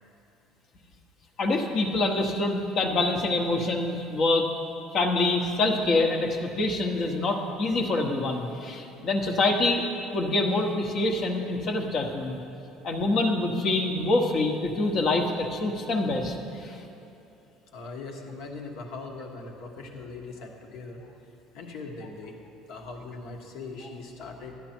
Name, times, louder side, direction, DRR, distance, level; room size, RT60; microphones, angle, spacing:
voice 1, 1.4-4.5 4.9-9.8 10.1-12.4 12.8-16.3 16.6-16.8, left 2 dB, 50° left, 3 dB, 1.2 m, -25 dB
voice 2, 17.7-21.0 21.5-22.4 22.7-24.5, left 3 dB, 70° left, 2 dB, 1.5 m, -40 dB
12.5 x 10.0 x 4.4 m, 2.8 s
supercardioid pair, 105°, 0 cm